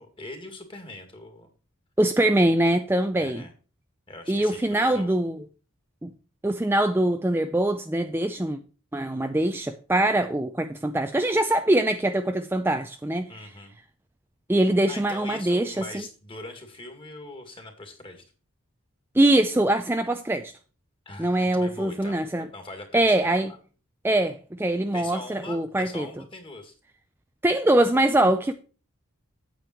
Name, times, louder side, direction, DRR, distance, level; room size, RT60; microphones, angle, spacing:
voice 1, 0.0-1.5 3.2-3.5 4.1-5.1 13.3-13.8 14.9-18.2 21.1-22.3 22.5-23.1 23.3-23.6 24.9-26.8, left 2 dB, 25° left, 2.2 m, -41 dB
voice 2, 2.0-3.4 4.3-5.4 6.0-6.1 6.4-8.6 8.9-13.3 14.5-15.9 19.1-20.5 21.2-22.5 22.9-23.5 24.0-26.1 27.4-28.5, right 1 dB, 10° right, 0.4 m, -23 dB
8.9 x 8.6 x 4.4 m
head